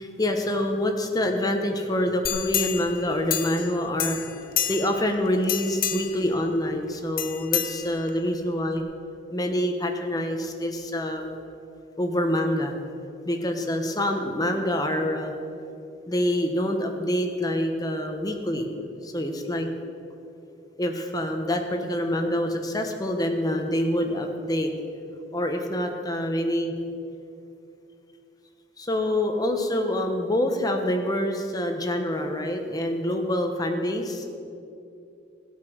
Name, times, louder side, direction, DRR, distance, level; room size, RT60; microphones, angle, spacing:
voice 1, 0.0-8.8 9.3-11.4 12.0-12.7 13.2-15.3 16.1-18.7 19.0-19.7 20.8-24.7 25.3-26.7 28.8-34.2, left 1 dB, 20° left, 4 dB, 1.1 m, -26 dB
sound 1, 2.2-3.7 4.0-5.1 5.4-6.2 7.2-8.3 8.8-8.9, left 10 dB, 50° left, 0.8 m, -29 dB
16.5 x 8.3 x 6.3 m, 2.6 s
head